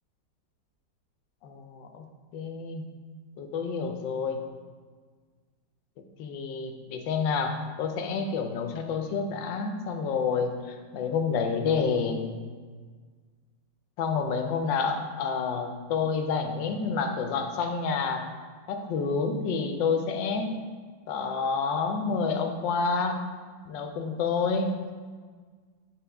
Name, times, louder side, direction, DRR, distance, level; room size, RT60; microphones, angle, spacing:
voice 1, 1.4-2.0 2.3-2.9 3.4-4.4 6.2-12.3 14.0-18.3 18.7-20.5 21.1-23.2 23.7-24.8, left 5 dB, 90° left, 5 dB, 1.4 m, -29 dB
8.5 x 4.5 x 3.4 m, 1.6 s
omnidirectional pair, 1.9 m